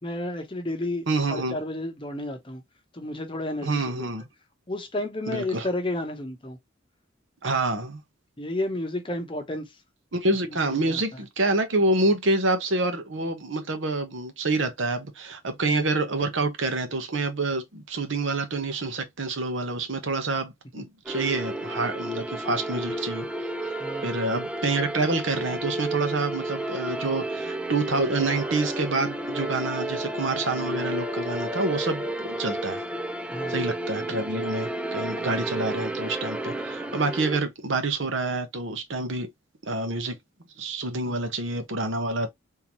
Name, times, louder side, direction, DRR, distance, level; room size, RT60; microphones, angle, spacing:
voice 1, 0.0-2.6 2.9-4.1 4.7-6.6 8.4-9.8 10.7-11.0 23.8-24.2 33.3-33.7 41.0-41.2, left 1 dB, 25° left, 0.8 m, -32 dB
voice 2, 1.1-1.6 3.6-4.2 5.3-5.7 7.4-8.0 10.1-23.3 23.6-23.7 24.0-32.8 33.5-39.3 39.6-40.2 40.6-42.3, right 2 dB, 65° right, 1.0 m, -27 dB
sound 1, 21.1-37.4, right 1 dB, 5° right, 0.3 m, -31 dB
3.7 x 2.8 x 3.0 m
head